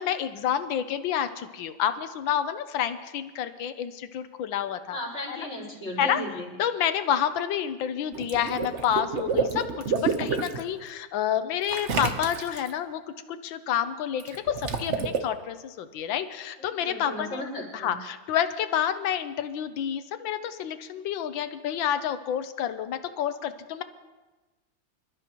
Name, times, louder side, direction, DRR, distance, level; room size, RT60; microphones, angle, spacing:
voice 1, 0.0-5.0 5.3-5.4 6.0-6.2 6.6-13.0 13.3-17.4 17.7-23.8, left 9 dB, 75° left, 10 dB, 1.5 m, -29 dB
voice 2, 4.9-6.5 16.8-18.0, left 1 dB, 30° left, -7 dB, 5.3 m, -35 dB
Water / Liquid, 8.1-10.6 11.7-12.7 14.2-15.2, right 5 dB, 45° right, 1.1 m, -29 dB
26.0 x 13.0 x 3.0 m, 1.2 s
omnidirectional pair, 2.1 m